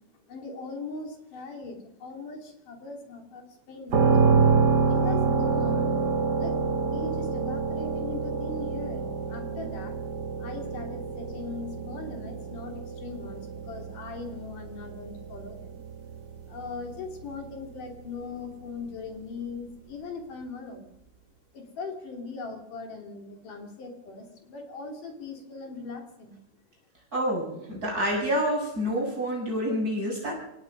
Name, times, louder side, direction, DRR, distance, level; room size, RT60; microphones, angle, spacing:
voice 1, 0.3-4.2 4.9-6.0 6.3-6.5 6.8-10.0 10.4-15.8 16.5-20.9 21.5-26.4, left 4 dB, 80° left, 3 dB, 4.7 m, -40 dB
sound 1, 3.9-17.7, right 5 dB, 45° right, 1.5 m, -27 dB
voice 2, 27.1-30.3, equal, 25° right, -2 dB, 7.7 m, -28 dB
28.0 x 17.5 x 5.5 m, 0.86 s
omnidirectional pair, 3.7 m